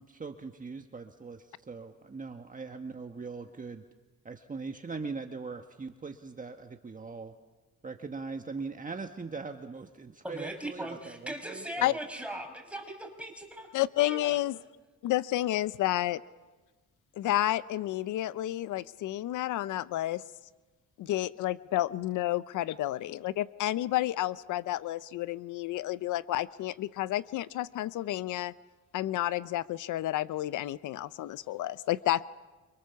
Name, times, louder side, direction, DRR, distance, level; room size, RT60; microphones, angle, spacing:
voice 1, 0.0-3.8 4.2-7.3 7.8-12.0, right 4 dB, 25° right, 5 dB, 1.5 m, -41 dB
voice 2, 10.2-13.7 14.0-14.4, right 1 dB, 5° right, 3 dB, 5.6 m, -39 dB
voice 3, 13.7-14.6 15.0-16.2 17.2-20.2 21.0-28.5 28.9-32.2, left 15 dB, 80° left, 16 dB, 0.7 m, -30 dB
28.0 x 24.5 x 7.1 m, 1.2 s
cardioid pair, 90°, 30 cm